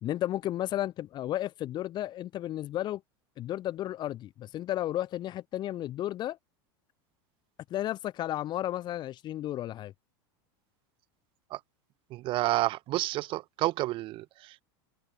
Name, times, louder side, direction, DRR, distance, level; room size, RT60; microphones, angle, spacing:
voice 1, 0.0-3.0 3.4-6.4 7.7-9.9, left 13 dB, 35° left, 3.8 m, -33 dB
voice 2, 12.1-14.6, right 17 dB, 45° right, 2.8 m, -30 dB
supercardioid pair, 140°, 13 cm